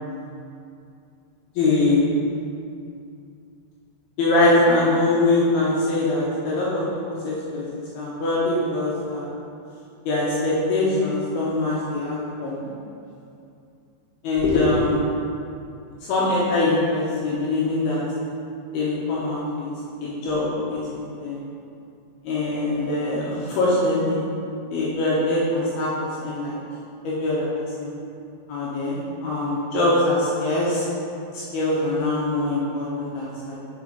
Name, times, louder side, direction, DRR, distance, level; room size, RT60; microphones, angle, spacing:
voice 1, 1.6-2.0 4.2-6.8 7.2-7.6 7.9-9.2 10.1-12.7 14.2-15.0 16.1-18.0 18.7-19.7 20.0-21.4 22.2-24.2 24.7-25.9 26.2-26.6 27.0-27.5 27.8-27.9 28.5-30.8 31.3-33.6, left 2 dB, 80° left, -7 dB, 2.2 m, -23 dB
6.7 x 4.7 x 5.2 m, 2.5 s
omnidirectional pair, 5.8 m